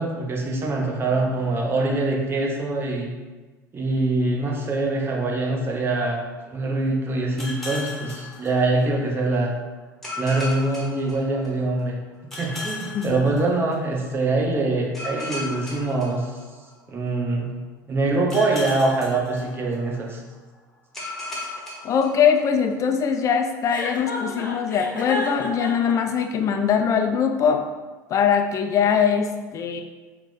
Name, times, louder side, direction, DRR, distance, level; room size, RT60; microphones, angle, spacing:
voice 1, 0.0-3.1 3.7-6.2 6.5-9.5 10.2-12.0 12.4-16.3 16.9-17.5 17.9-20.2, right 2 dB, 20° right, -1 dB, 0.8 m, -24 dB
sound 1, 7.4-9.1 10.0-11.8 12.3-14.0 14.9-16.9 18.3-20.1 20.9-22.8, left 2 dB, 5° left, 1.1 m, -36 dB
voice 2, 21.8-27.7 28.1-29.8, left 7 dB, 30° left, 5 dB, 0.3 m, -22 dB
Chuckle chortle, 23.7-25.9, left 2 dB, 85° left, 0.7 m, -30 dB
4.6 x 2.1 x 3.9 m, 1.3 s
figure-of-eight pair, 70°, 10 cm